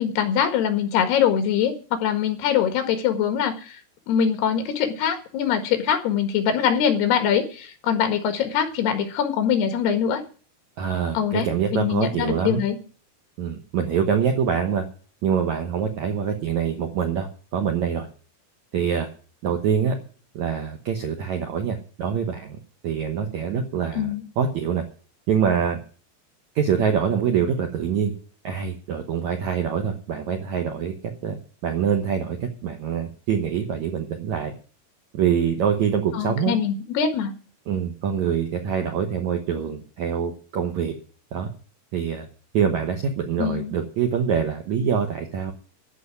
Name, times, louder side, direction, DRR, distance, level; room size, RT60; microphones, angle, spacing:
voice 1, 0.0-3.8 4.1-10.2 11.1-12.8 23.9-24.2 36.1-37.3 43.4-43.7, left 8 dB, 70° left, 7 dB, 3.6 m, -23 dB
voice 2, 10.8-12.6 13.4-14.8 15.2-18.1 18.7-19.1 19.4-20.0 20.3-22.6 22.8-24.8 25.3-25.8 26.5-28.1 28.4-34.5 35.1-36.5 37.7-40.9 41.3-41.5 41.9-42.3 42.5-45.5, right 7 dB, 85° right, 4 dB, 1.6 m, -25 dB
14.0 x 5.7 x 9.8 m, 0.40 s
omnidirectional pair, 5.1 m